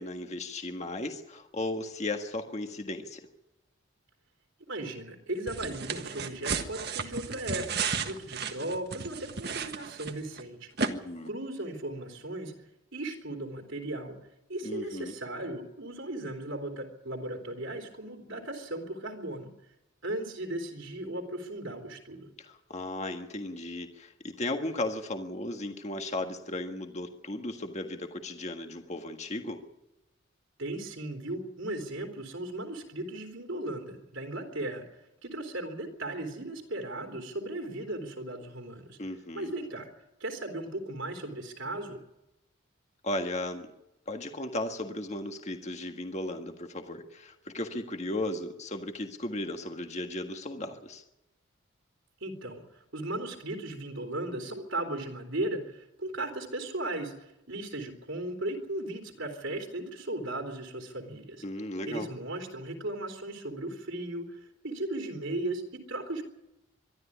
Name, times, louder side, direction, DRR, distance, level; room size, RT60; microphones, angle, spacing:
voice 1, 0.0-3.3 10.8-11.3 14.6-15.2 22.4-29.6 39.0-39.5 43.0-43.7 44.1-51.0 61.4-62.1, left 1 dB, 35° left, 5 dB, 1.6 m, -36 dB
voice 2, 4.7-10.7 11.3-12.5 12.9-14.2 14.5-19.5 20.0-22.3 30.6-34.9 35.2-39.0 39.3-39.9 40.2-42.0 52.2-61.5 61.9-66.2, right 1 dB, 70° right, 2 dB, 3.5 m, -36 dB
sound 1, 5.5-10.4 10.8-10.9, right 5 dB, 50° right, 1.5 m, -33 dB
23.5 x 13.0 x 9.9 m, 0.90 s
head